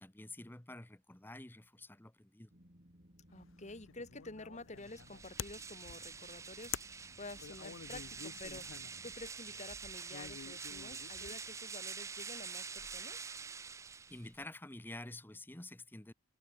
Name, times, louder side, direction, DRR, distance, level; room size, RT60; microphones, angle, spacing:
voice 1, 0.0-2.5 14.1-16.1, left 2 dB, 10° left, 0.9 m, -49 dB
sound 1, 2.5-9.2, equal, 45° right, 6.1 m, -63 dB
sound 2, 3.3-11.6, left 9 dB, 70° left, 0.5 m, -50 dB
voice 2, 3.3-13.3, left 2 dB, 35° left, 2.3 m, -50 dB
sound 3, 4.8-14.4, right 5 dB, 15° right, 0.3 m, -47 dB
head